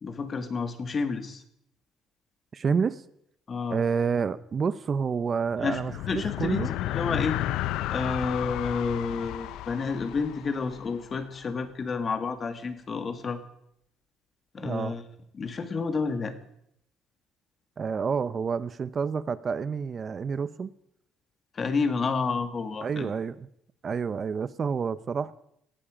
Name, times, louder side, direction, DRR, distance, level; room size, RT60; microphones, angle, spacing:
voice 1, 0.0-1.4 3.5-3.8 5.6-5.8 6.1-7.4 7.9-13.4 14.5-15.0 15.3-16.3 21.6-23.1, left 4 dB, 35° left, 2.0 m, -30 dB
voice 2, 2.5-3.0 3.7-6.7 14.6-14.9 17.8-20.7 22.8-23.5 23.8-25.3, right 6 dB, 35° right, 0.6 m, -29 dB
sound 1, 5.5-11.2, left 14 dB, 80° left, 0.6 m, -33 dB
18.5 x 14.5 x 5.1 m
cardioid pair, 110°, 0 cm